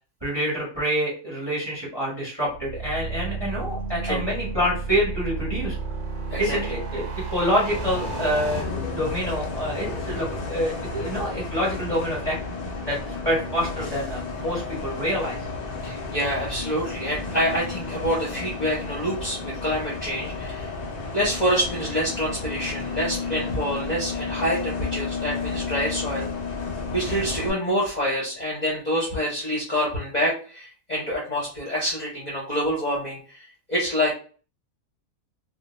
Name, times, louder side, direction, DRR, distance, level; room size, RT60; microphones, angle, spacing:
voice 1, 0.2-5.8 6.4-12.3 12.9-13.0 13.2-15.4, equal, 20° right, -5 dB, 0.8 m, -27 dB
sound 1, 2.5-8.6, right 4 dB, 75° right, 1.0 m, -32 dB
voice 2, 6.3-6.8 15.8-20.7 21.1-26.3 26.9-34.1, equal, 40° left, -5 dB, 0.7 m, -27 dB
Bus, 7.7-27.5, left 3 dB, 80° left, 0.3 m, -32 dB
2.2 x 2.1 x 2.9 m, 0.39 s
omnidirectional pair, 1.4 m